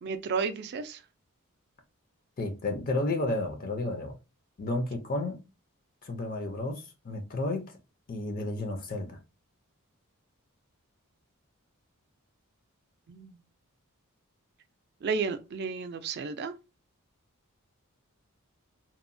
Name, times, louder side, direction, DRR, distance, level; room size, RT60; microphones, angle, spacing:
voice 1, 0.0-1.0 13.1-13.4 15.0-16.5, right 5 dB, 50° right, 0.3 m, -32 dB
voice 2, 2.4-4.1 4.6-5.4 6.0-7.7 8.1-9.2, left 2 dB, 40° left, 0.4 m, -32 dB
2.9 x 2.0 x 2.5 m
head